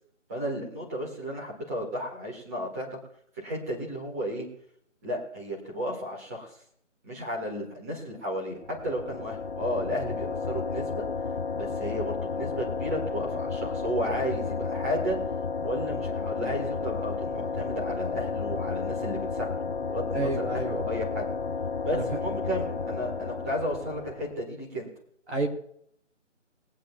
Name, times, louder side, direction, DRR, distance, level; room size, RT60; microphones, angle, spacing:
voice 1, 0.3-3.0 3.4-4.5 5.0-6.5 7.0-11.1 11.6-15.2 15.6-19.5 19.9-21.3 21.8-24.9, equal, 10° right, -3 dB, 1.7 m, -33 dB
sound 1, 8.6-24.4, left 5 dB, 50° left, 0.5 m, -32 dB
voice 2, 20.1-20.8 21.9-22.0 25.3-25.5, right 2 dB, 60° right, 2 dB, 3.1 m, -29 dB
21.5 x 9.2 x 2.4 m, 0.67 s
figure-of-eight pair, 165°, 38 cm